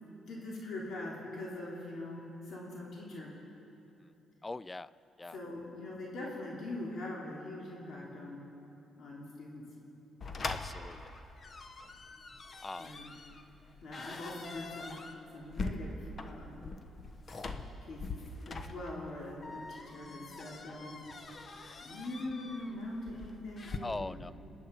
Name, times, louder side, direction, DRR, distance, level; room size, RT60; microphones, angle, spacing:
voice 1, 0.0-3.3 5.3-8.4 9.0-9.6 12.8-13.1 13.8-15.0 15.3-16.6 17.8-21.0 21.8-24.2, left 1 dB, 60° left, -4 dB, 3.3 m, -42 dB
voice 2, 4.4-4.9 5.2-5.4 10.4-11.1 12.6-13.0 19.5-19.6 23.8-24.3, left 2 dB, 20° left, 18 dB, 0.4 m, -41 dB
sound 1, 10.2-23.8, left 3 dB, 40° left, 1.1 m, -43 dB
27.0 x 9.7 x 5.4 m, 3.0 s
cardioid pair, 90°, 0 cm